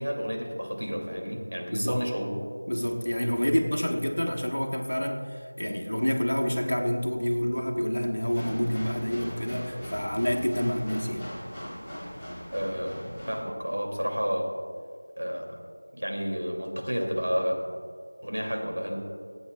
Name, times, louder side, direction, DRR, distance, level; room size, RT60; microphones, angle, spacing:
voice 1, 0.0-2.4 12.5-14.5 15.2-15.6 15.9-17.7 18.2-19.0, equal, 75° right, 0 dB, 2.6 m, -31 dB
voice 2, 1.7-2.1 2.7-11.3, equal, 85° left, 1 dB, 1.3 m, -28 dB
sound 1, 8.3-13.4, equal, ahead, 1.6 m, -40 dB
25.0 x 8.5 x 2.4 m, 2.1 s
figure-of-eight pair, 175°, 0 cm